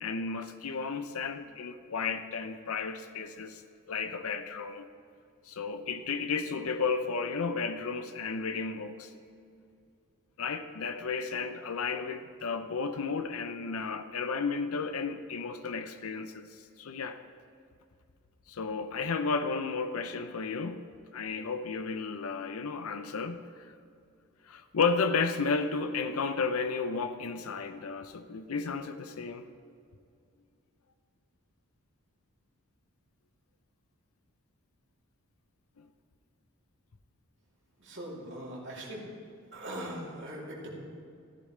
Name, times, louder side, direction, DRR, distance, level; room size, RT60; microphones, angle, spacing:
voice 1, 0.0-3.6 3.9-4.9 5.5-9.1 10.4-17.2 18.5-20.9 21.1-23.7 24.5-29.5 35.8-35.9, left 4 dB, 75° left, 9 dB, 0.6 m, -33 dB
voice 2, 37.8-39.1 39.5-40.7, right 1 dB, 55° right, -4 dB, 2.9 m, -40 dB
14.0 x 13.5 x 3.2 m, 2.4 s
head